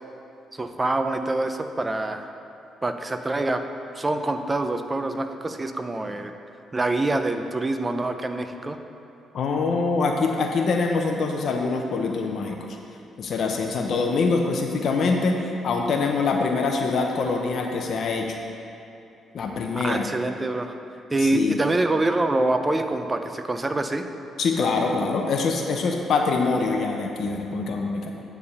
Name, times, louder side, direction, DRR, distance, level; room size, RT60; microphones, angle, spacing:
voice 1, 0.5-2.3 2.8-3.6 4.0-6.3 6.7-8.8 19.8-20.7 21.1-24.0, right 2 dB, 20° right, 7 dB, 0.5 m, -25 dB
voice 2, 9.3-12.6 13.2-18.4 19.3-20.1 21.2-21.6 24.4-28.2, left 4 dB, 60° left, 2 dB, 0.6 m, -24 dB
9.3 x 3.5 x 6.8 m, 2.8 s
cardioid pair, 90°, 0 cm